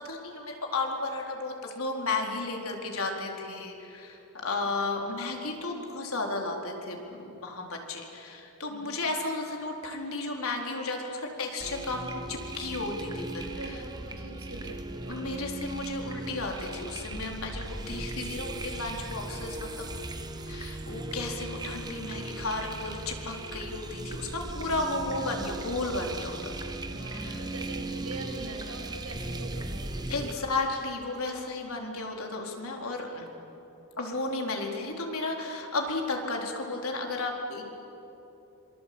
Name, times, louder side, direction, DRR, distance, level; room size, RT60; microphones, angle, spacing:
voice 1, 0.0-13.3 13.6-13.8 15.1-19.9 20.5-26.5 27.1-27.4 30.1-33.3 34.0-37.6, left 3 dB, 80° left, 1 dB, 4.2 m, -33 dB
sound 1, 11.6-30.3, right 2 dB, 20° right, 1.2 m, -38 dB
voice 2, 13.5-15.2 26.9-30.5, right 2 dB, 85° right, 0 dB, 7.2 m, -42 dB
26.5 x 25.0 x 8.8 m, 3.0 s
head